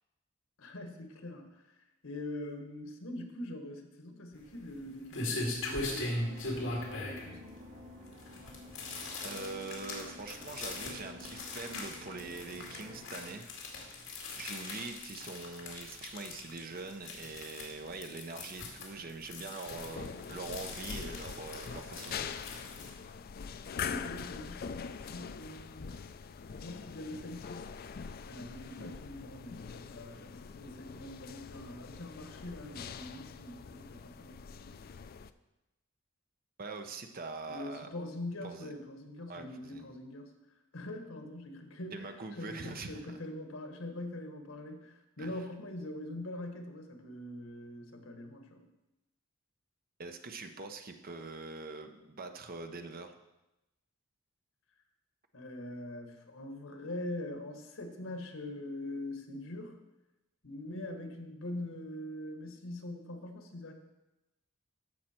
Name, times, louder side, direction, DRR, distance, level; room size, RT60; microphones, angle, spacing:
voice 1, 0.6-1.8 2.0-7.4 23.8-26.0 26.6-27.7 28.3-34.6 37.5-40.3 40.7-48.6 55.3-59.8 60.4-63.7, left 1 dB, 90° left, 5 dB, 1.5 m, -43 dB
sound 1, 4.3-22.9, left 2 dB, 70° left, 2.3 m, -41 dB
sound 2, 5.9-13.3, left 1 dB, 90° right, 3.0 m, -51 dB
voice 2, 9.2-13.5 14.3-22.4 36.6-37.9 38.4-38.7 39.3-39.9 41.9-43.2 45.2-45.4 50.0-53.1, right 3 dB, 45° right, 6 dB, 0.9 m, -43 dB
sound 3, 19.6-35.3, left 6 dB, 50° left, 0.4 m, -43 dB
14.0 x 5.8 x 4.4 m, 0.97 s
head